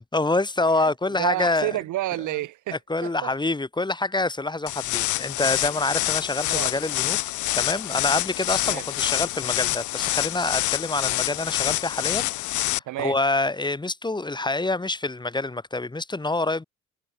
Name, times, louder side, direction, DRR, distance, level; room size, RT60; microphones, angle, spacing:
voice 1, 0.1-1.8 2.9-7.2 7.5-16.6, left 2 dB, 15° left, 1.5 m, -26 dB
voice 2, 0.8-3.3 6.5-6.7 8.6-8.8 12.9-13.2, right 15 dB, 80° right, 0.9 m, -30 dB
sound 1, 4.7-12.8, left 17 dB, 75° left, 0.5 m, -26 dB
cardioid pair, 90°, 30 cm